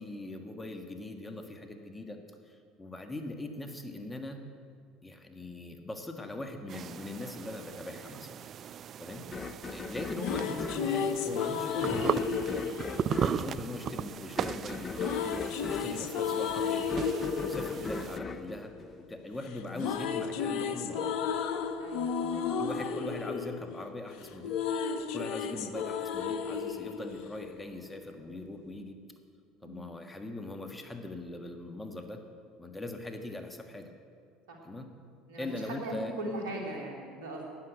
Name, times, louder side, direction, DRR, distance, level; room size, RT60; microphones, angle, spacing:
voice 1, 0.0-4.4 5.0-8.4 9.0-9.2 9.7-12.7 13.2-17.1 17.4-21.2 22.6-24.6 25.1-29.0 29.6-32.2 32.6-33.9 34.6-34.9 35.4-36.1, left 2 dB, 15° left, 6 dB, 1.5 m, -41 dB
sound 1, 6.7-18.2, right 9 dB, 45° right, 0.3 m, -38 dB
sound 2, 9.3-19.5, left 4 dB, 30° left, 0.7 m, -40 dB
sound 3, 9.9-14.1 14.9-19.2 19.5-28.0, left 6 dB, 65° left, 0.8 m, -33 dB
voice 2, 21.8-22.5 29.6-29.8 34.5-34.6 35.3-37.5, right 1 dB, 80° right, 0 dB, 3.0 m, -39 dB
12.0 x 9.7 x 7.9 m, 2.3 s
hypercardioid pair, 70°, 0 cm